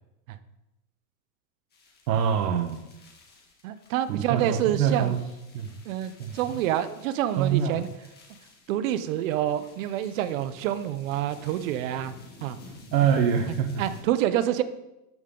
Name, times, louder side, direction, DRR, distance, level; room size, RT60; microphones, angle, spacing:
sound 1, 1.7-14.0, left 2 dB, 20° left, 2.1 m, -51 dB
voice 1, 2.1-2.8 4.1-5.2 5.5-5.7 6.2-6.4 7.4-7.8 12.9-13.8, right 8 dB, 80° right, 5 dB, 1.2 m, -24 dB
voice 2, 3.6-5.1 5.8-7.9 8.7-12.1 12.4-12.6 13.8-14.6, right 11 dB, 55° right, 13 dB, 0.7 m, -27 dB
13.5 x 5.6 x 3.8 m, 0.94 s
supercardioid pair, 145°, 49 cm